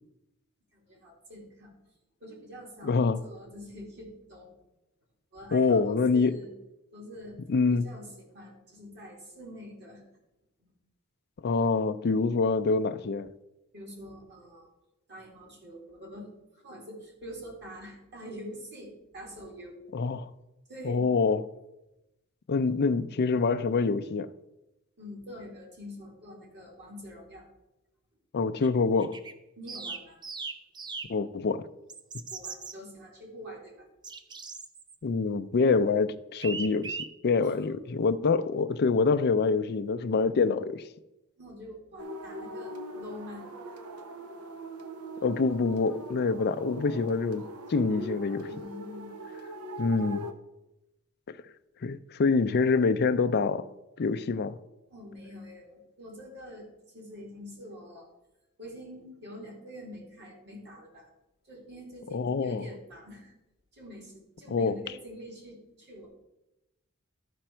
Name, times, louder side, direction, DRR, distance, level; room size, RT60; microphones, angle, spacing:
voice 1, 0.7-1.7 2.2-4.5 5.3-6.5 6.9-10.0 10.6-10.7 13.7-14.7 15.1-19.8 20.7-21.1 22.7-22.8 25.0-27.5 29.5-30.2 32.3-33.9 37.4-37.8 41.4-43.5 48.3-49.2 54.9-58.1 58.6-61.1 61.4-63.3 63.7-66.1, equal, 50° right, 2.6 m, -45 dB
voice 2, 2.8-3.2 5.5-6.3 7.5-7.8 11.4-13.3 19.9-20.3 20.8-21.4 22.5-24.3 28.3-29.2 31.1-31.7 35.0-37.0 37.2-40.8 45.2-47.4 47.7-48.5 49.8-50.3 51.8-53.6 54.0-54.6 62.1-62.6 64.5-64.8, left 4 dB, 50° left, 0.4 m, -25 dB
sound 1, 28.6-28.7 29.0-29.3 29.7-31.1 31.9-32.7 34.0-34.9 36.4-37.1, right 4 dB, 20° right, 0.5 m, -38 dB
sound 2, 42.0-50.3, right 1 dB, 80° right, 0.8 m, -41 dB
12.5 x 5.2 x 4.4 m
head